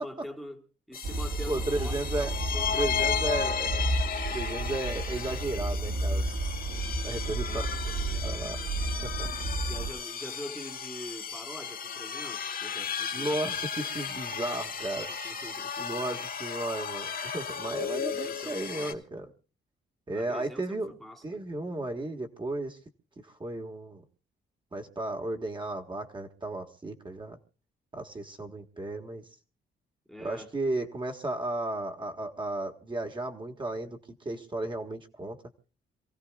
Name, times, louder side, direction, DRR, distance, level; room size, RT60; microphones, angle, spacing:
voice 1, 0.0-3.7 7.4-8.4 9.6-13.7 14.9-16.2 18.0-19.0 20.1-21.4 30.1-30.5, equal, ahead, 1.6 m, -45 dB
sound 1, 0.9-18.9, left 7 dB, 45° left, 1.3 m, -35 dB
sound 2, 1.0-9.9, right 2 dB, 60° right, 3.1 m, -32 dB
voice 2, 1.5-2.3 2.7-3.8 4.3-6.4 7.0-7.7 8.2-8.6 9.0-9.3 13.1-15.1 15.8-19.3 20.1-20.9 21.2-22.8 23.2-24.0 24.7-27.4 27.9-29.2 30.2-34.0 34.2-35.4, right 2 dB, 20° right, 1.7 m, -34 dB
27.0 x 16.5 x 2.4 m
cardioid pair, 130°, 21 cm